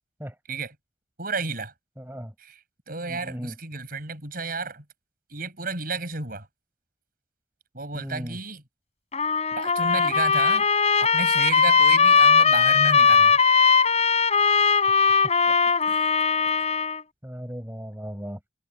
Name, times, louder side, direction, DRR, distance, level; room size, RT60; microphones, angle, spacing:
voice 1, 1.2-1.7 2.4-2.6 2.9-4.8 5.3-6.5 7.7-8.6 9.6-10.7 11.0-13.4 15.5-15.6 15.8-16.1, right 3 dB, 50° right, 6.8 m, -32 dB
voice 2, 2.0-2.3 3.1-3.6 7.9-8.4 17.2-18.4, equal, 10° right, 5.6 m, -36 dB
Trumpet, 9.1-17.0, left 5 dB, 35° left, 5.6 m, -19 dB
head